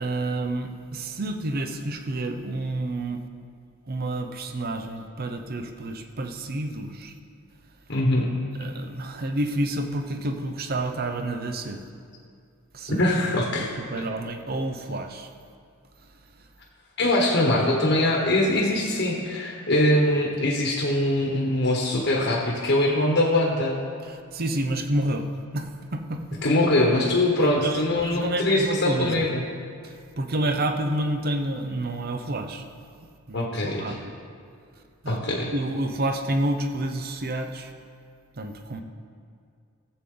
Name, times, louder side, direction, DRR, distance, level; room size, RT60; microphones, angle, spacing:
voice 1, 0.0-3.2 3.9-7.1 8.6-11.8 12.7-15.3 24.0-25.3 25.5-26.5 27.4-29.3 29.8-32.7 33.0-34.1 35.0-37.7 38.4-38.8, right 1 dB, 45° right, 6 dB, 0.7 m, -29 dB
voice 2, 7.9-8.3 13.0-13.7 17.0-23.8 26.4-29.4 33.3-34.0 35.1-35.5, left 1 dB, 55° left, -1 dB, 1.3 m, -22 dB
15.0 x 7.6 x 3.8 m, 2.3 s
head